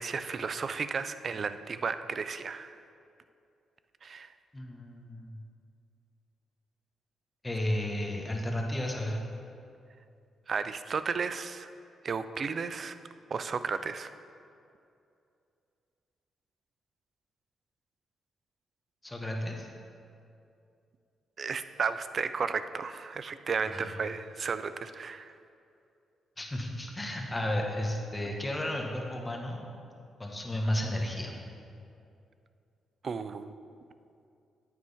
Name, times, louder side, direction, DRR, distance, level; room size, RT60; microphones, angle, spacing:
voice 1, 0.0-2.7 4.0-4.3 10.5-11.7 12.0-13.0 13.3-14.1 21.4-25.3 33.0-33.6, right 5 dB, 50° right, 12 dB, 0.4 m, -33 dB
voice 2, 4.5-5.4 7.4-9.2 19.0-19.7 23.7-23.9 26.4-29.6 30.2-31.3, left 1 dB, 20° left, 0 dB, 1.4 m, -33 dB
9.3 x 7.8 x 3.6 m, 2.5 s
cardioid pair, 65°, 0 cm